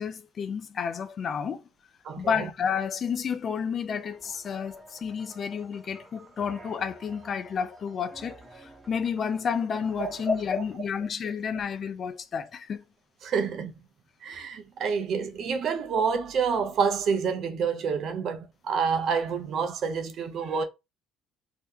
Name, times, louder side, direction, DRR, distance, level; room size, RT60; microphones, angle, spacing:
voice 1, 0.0-1.6 2.2-12.8, left 6 dB, 45° left, 0.5 m, -31 dB
voice 2, 2.0-2.5 10.0-10.1 13.2-13.7 14.2-20.6, right 6 dB, 55° right, 0.7 m, -28 dB
sound 1, 4.0-10.8, right 2 dB, 20° right, 0.9 m, -50 dB
2.8 x 2.2 x 3.5 m
supercardioid pair, 95°, 0 cm